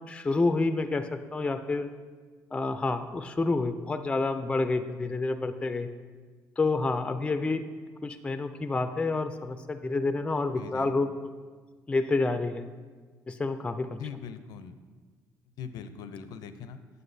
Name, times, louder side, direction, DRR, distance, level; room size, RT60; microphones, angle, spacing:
voice 1, 0.0-1.9 2.5-5.9 6.6-7.6 8.0-11.1 11.9-12.7 13.3-14.0, left 3 dB, 15° left, 9 dB, 0.3 m, -28 dB
voice 2, 10.6-11.0 14.0-14.8 15.6-16.8, left 7 dB, 80° left, 11 dB, 0.4 m, -41 dB
7.9 x 7.7 x 2.6 m, 1.5 s
cardioid pair, 95°, 7 cm